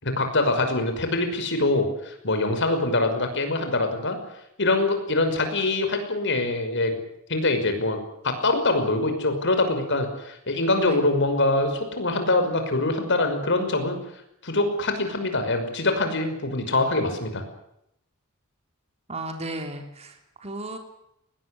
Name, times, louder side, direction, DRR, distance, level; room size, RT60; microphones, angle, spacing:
voice 1, 0.0-4.2 4.6-7.0 7.3-8.0 8.2-14.0 14.4-17.4, left 2 dB, 60° left, 7 dB, 5.8 m, -24 dB
voice 2, 19.1-20.8, right 2 dB, 30° right, 4 dB, 3.7 m, -35 dB
20.5 x 20.0 x 9.9 m, 0.78 s
head